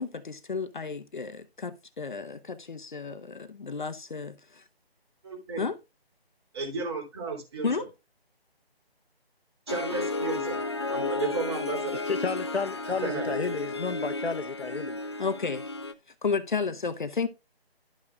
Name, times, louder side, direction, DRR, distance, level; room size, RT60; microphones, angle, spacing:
voice 1, 0.0-4.6 5.6-5.8 7.6-7.9 15.2-15.7 16.2-17.3, left 5 dB, 50° left, 0.9 m, -32 dB
voice 2, 5.2-5.6 6.5-7.7 9.7-10.6 10.9-12.0 13.0-13.4, right 4 dB, 25° right, 3.2 m, -33 dB
Harp, 9.7-15.9, left 3 dB, 25° left, 0.5 m, -33 dB
voice 3, 11.9-15.0, left 4 dB, 85° left, 1.0 m, -32 dB
12.0 x 6.0 x 2.3 m
figure-of-eight pair, 155°, 31 cm